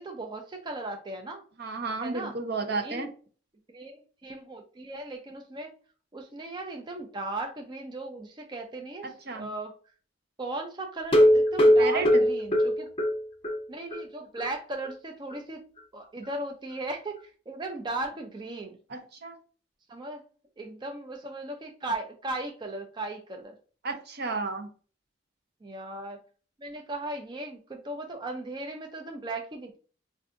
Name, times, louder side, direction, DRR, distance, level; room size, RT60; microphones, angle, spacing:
voice 1, 0.0-1.4 2.0-2.3 2.7-3.1 3.7-5.7 6.1-9.7 10.4-12.9 13.7-15.6 15.9-18.8 19.9-20.2 20.6-23.5 25.6-26.2 26.6-29.8, right 2 dB, 25° right, 3 dB, 0.4 m, -37 dB
voice 2, 1.6-3.1 9.0-9.5 11.8-12.2 18.9-19.4 23.8-24.7, right 3 dB, 60° right, 5 dB, 0.8 m, -32 dB
sound 1, 11.0-13.6 13.9-14.0 14.4-14.5 14.8-14.9, equal, 30° left, 0.7 m, -20 dB
4.5 x 2.5 x 2.5 m, 0.40 s
head